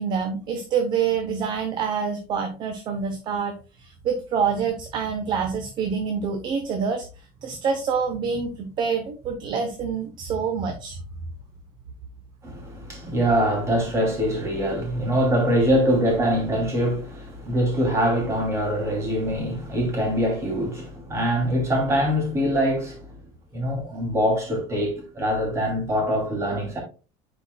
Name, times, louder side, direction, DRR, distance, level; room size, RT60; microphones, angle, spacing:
voice 1, 0.0-11.0, right 6 dB, 40° right, 0.9 m, -27 dB
voice 2, 12.4-23.1 23.5-26.8, equal, 25° right, 2.9 m, -23 dB
10.0 x 4.6 x 2.3 m
cardioid pair, 155°, 12 cm